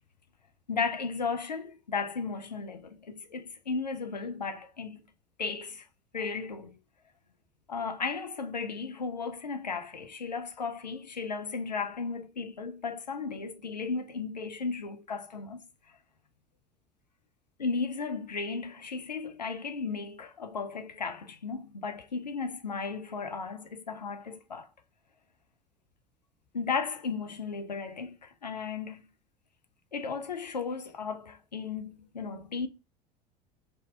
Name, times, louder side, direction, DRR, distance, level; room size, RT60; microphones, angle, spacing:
voice 1, 0.7-5.1 5.4-5.8 6.1-6.8 7.7-15.7 17.6-24.7 26.5-29.0 29.9-32.7, left 5 dB, 85° left, 0.5 m, -35 dB
3.3 x 2.7 x 3.7 m
figure-of-eight pair, 70°, 21 cm